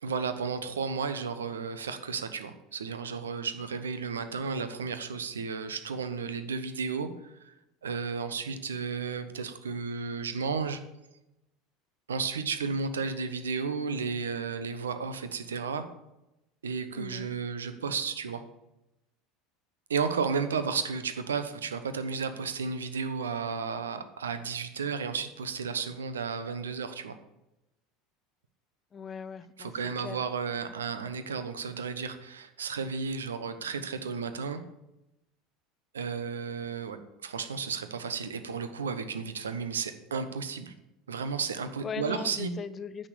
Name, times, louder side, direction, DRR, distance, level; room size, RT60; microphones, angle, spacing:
voice 1, 0.0-7.5 7.8-10.8 12.1-15.9 16.6-18.4 19.9-27.2 29.6-34.6 35.9-40.7 41.1-42.5, right 5 dB, 75° right, 10 dB, 0.9 m, -33 dB
voice 2, 16.9-17.3 28.9-30.2 41.8-43.1, left 6 dB, 30° left, 14 dB, 0.6 m, -39 dB
9.9 x 6.5 x 7.0 m, 0.92 s
figure-of-eight pair, 75°, 0 cm